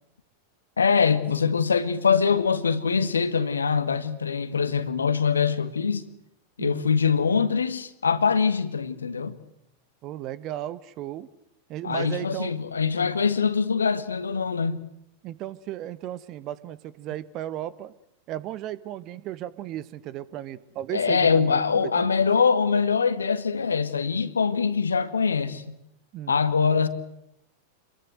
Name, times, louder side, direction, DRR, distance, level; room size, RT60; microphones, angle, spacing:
voice 1, 0.8-6.1 6.6-9.4 11.8-14.9 20.9-25.7 26.3-26.9, left 5 dB, 75° left, 2.0 m, -23 dB
voice 2, 6.6-6.9 10.0-11.3 11.7-12.5 15.2-17.9 18.3-22.1 26.1-26.4, right 13 dB, 40° right, 1.4 m, -35 dB
27.5 x 22.5 x 7.9 m
figure-of-eight pair, 90°, 0 cm